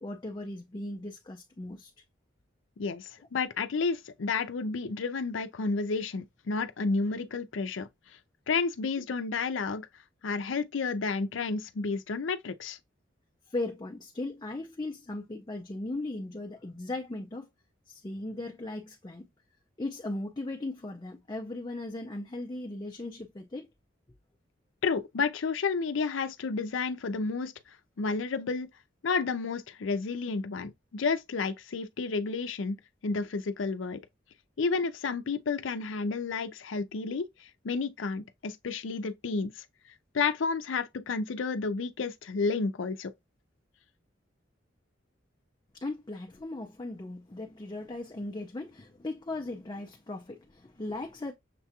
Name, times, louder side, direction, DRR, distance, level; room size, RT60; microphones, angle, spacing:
voice 1, 0.0-1.9 13.5-17.5 17.9-19.3 19.8-23.7 45.7-51.3, left 2 dB, 25° left, 0.5 m, -37 dB
voice 2, 2.8-7.9 8.5-9.9 10.2-12.8 24.8-27.5 28.0-28.7 29.0-32.8 33.0-34.0 34.6-37.3 37.6-39.6 40.1-43.1, left 4 dB, 85° left, 0.5 m, -31 dB
6.6 x 2.3 x 2.8 m
head